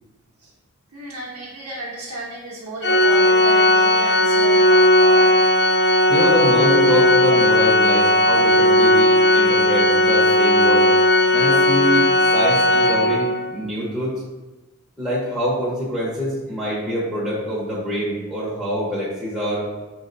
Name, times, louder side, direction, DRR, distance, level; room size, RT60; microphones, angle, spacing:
voice 1, 0.9-5.4, right 1 dB, 65° right, -6 dB, 0.7 m, -33 dB
Organ, 2.8-13.5, left 1 dB, 50° left, 0.3 m, -16 dB
voice 2, 6.1-10.9 11.3-14.2 15.0-19.7, equal, ahead, -9 dB, 0.9 m, -25 dB
4.6 x 3.2 x 2.6 m, 1.1 s
head